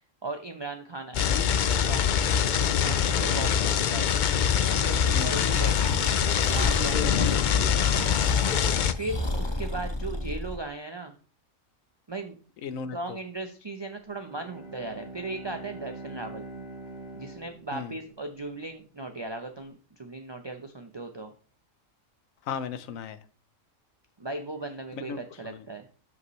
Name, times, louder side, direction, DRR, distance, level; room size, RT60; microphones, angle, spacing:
voice 1, 0.2-1.3 1.8-2.1 2.4-2.5 2.8-4.1 4.7-7.8 9.0-11.1 12.1-12.4 12.9-16.4 17.1-21.3 24.2-25.9, right 2 dB, 25° right, 0.6 m, -37 dB
sound 1, 1.1-8.9, left 8 dB, 60° left, 0.5 m, -24 dB
Breathing, 5.5-10.6, left 1 dB, 25° left, 0.9 m, -33 dB
voice 2, 12.6-13.0 17.7-17.9 22.5-23.2 24.9-25.6, left 6 dB, 90° left, 1.2 m, -36 dB
Bowed string instrument, 14.0-18.4, right 2 dB, 50° right, 4.1 m, -43 dB
12.5 x 5.5 x 3.1 m
omnidirectional pair, 1.4 m